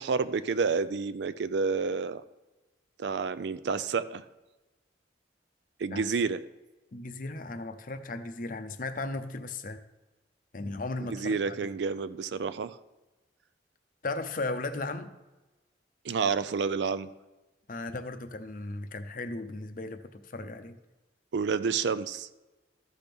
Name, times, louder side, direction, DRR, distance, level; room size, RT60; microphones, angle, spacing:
voice 1, 0.0-2.2 3.0-4.2 5.8-6.4 11.1-12.8 16.0-17.1 21.3-22.3, right 5 dB, 65° right, 14 dB, 0.4 m, -29 dB
voice 2, 6.9-9.8 10.5-11.6 14.0-15.1 17.7-20.8, left 2 dB, 45° left, 8 dB, 0.6 m, -36 dB
13.5 x 6.0 x 3.5 m, 1.1 s
head